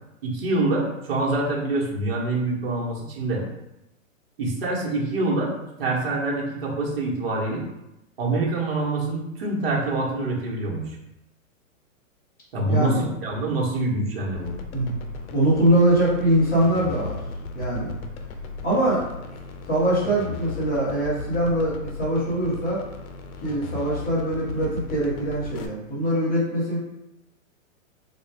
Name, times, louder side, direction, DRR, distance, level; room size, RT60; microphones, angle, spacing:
voice 1, 0.2-3.4 4.4-5.5 5.8-7.6 8.2-11.0 12.5-14.5, right 2 dB, 45° right, -3 dB, 1.0 m, -25 dB
voice 2, 12.6-13.0 14.7-14.9 15.3-17.2 17.5-17.9 18.6-19.0 19.7-22.8 23.4-26.8, right 1 dB, 10° left, -10 dB, 0.5 m, -22 dB
sound 1, 14.3-25.7, left 3 dB, 85° left, 0.6 m, -36 dB
3.7 x 2.3 x 3.3 m, 0.90 s
hypercardioid pair, 170°, 41 cm